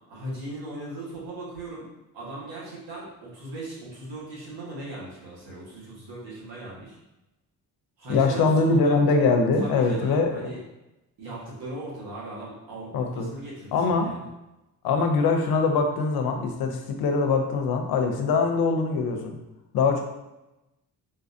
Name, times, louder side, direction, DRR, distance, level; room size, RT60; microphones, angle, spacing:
voice 1, 0.1-1.9 2.1-7.0 8.0-9.0 9.6-10.6 11.2-14.2, right 1 dB, 85° right, -6 dB, 1.4 m, -38 dB
voice 2, 8.1-10.5 12.9-13.3 13.7-14.1 14.8-19.4 19.7-20.0, left 4 dB, 85° left, 4 dB, 0.6 m, -23 dB
3.7 x 2.5 x 2.6 m, 0.96 s
cardioid pair, 100°, 36 cm